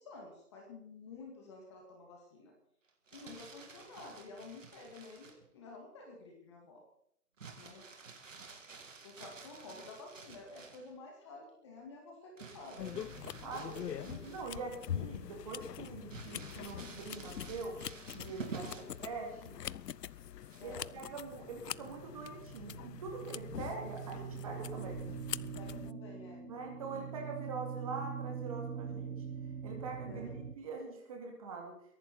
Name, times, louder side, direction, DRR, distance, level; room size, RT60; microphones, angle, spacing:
voice 1, 0.0-2.5 3.1-6.8 7.6-7.8 9.0-12.9 14.1-14.2 18.6-18.9 20.6-20.9 25.6-26.5 26.9-27.2 30.1-30.4, left 3 dB, 20° left, 1 dB, 2.1 m, -51 dB
Crumpling crinkling, 2.9-5.5 7.4-10.9 12.4-14.7 15.1-15.2 16.1-19.0 20.5-20.9, right 5 dB, 55° right, 2.9 m, -50 dB
sound 1, 12.8-25.9, left 10 dB, 85° left, 0.6 m, -44 dB
voice 2, 13.4-17.8 18.1-19.6 20.6-25.0 26.4-29.2 29.6-31.7, right 4 dB, 20° right, 1 dB, 2.6 m, -44 dB
sound 2, 21.1-30.5, right 7 dB, 80° right, 2.2 m, -44 dB
23.0 x 11.0 x 4.2 m, 0.71 s
hypercardioid pair, 165°, 47 cm